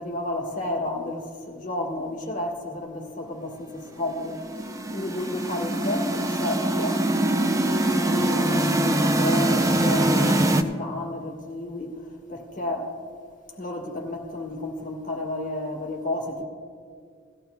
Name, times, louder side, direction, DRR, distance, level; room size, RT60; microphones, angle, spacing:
voice 1, 0.0-4.4 4.9-7.0 7.8-12.9 13.6-16.4, left 2 dB, 40° left, 1.5 m, -31 dB
sound 1, 4.2-10.6, right 1 dB, 15° right, 0.5 m, -23 dB
18.0 x 14.5 x 2.3 m
head